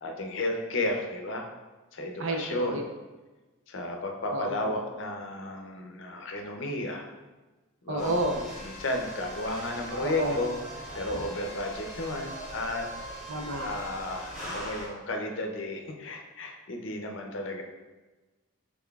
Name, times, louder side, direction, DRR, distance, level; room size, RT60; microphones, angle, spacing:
voice 1, 0.0-1.5 1.9-2.8 3.7-7.1 7.8-8.1 8.6-10.5 10.9-12.8 13.6-17.6, left 2 dB, 60° left, 3 dB, 0.6 m, -33 dB
voice 2, 2.2-2.8 4.3-4.7 7.9-8.5 10.0-10.4 13.3-13.7, right 1 dB, 65° right, 3 dB, 0.5 m, -30 dB
sound 1, 8.0-14.9, equal, 5° right, 1.4 m, -40 dB
5.9 x 3.6 x 2.3 m, 1.2 s
head